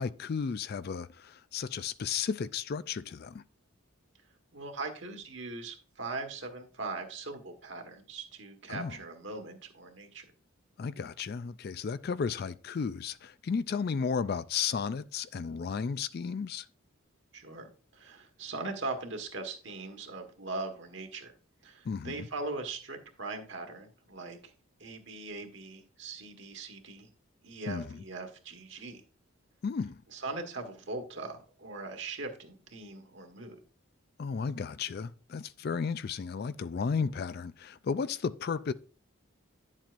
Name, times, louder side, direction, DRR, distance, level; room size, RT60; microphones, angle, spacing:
voice 1, 0.0-3.4 8.7-8.9 10.8-16.7 21.8-22.3 27.7-28.0 29.6-30.0 34.2-38.7, left 6 dB, 45° left, 0.3 m, -34 dB
voice 2, 4.5-10.2 17.3-21.3 21.6-24.5 24.8-27.1 27.4-29.0 30.1-33.6, right 3 dB, 55° right, 1.6 m, -40 dB
10.5 x 7.4 x 2.5 m
head